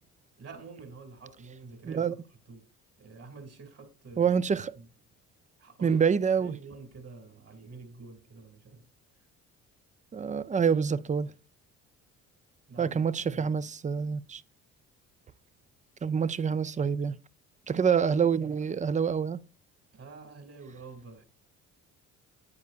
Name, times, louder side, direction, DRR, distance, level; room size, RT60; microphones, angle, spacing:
voice 1, 0.4-2.2 2.5-2.7 3.0-4.4 4.8-4.9 5.6-6.0 6.4-8.8 12.7-13.5 19.9-21.2, right 4 dB, 45° right, 2.5 m, -48 dB
voice 2, 4.2-4.7 5.8-6.5 10.1-11.3 12.8-14.4 16.0-17.2 17.7-19.4, right 6 dB, 20° right, 0.5 m, -26 dB
9.8 x 8.2 x 2.5 m
supercardioid pair, 65°, 35 cm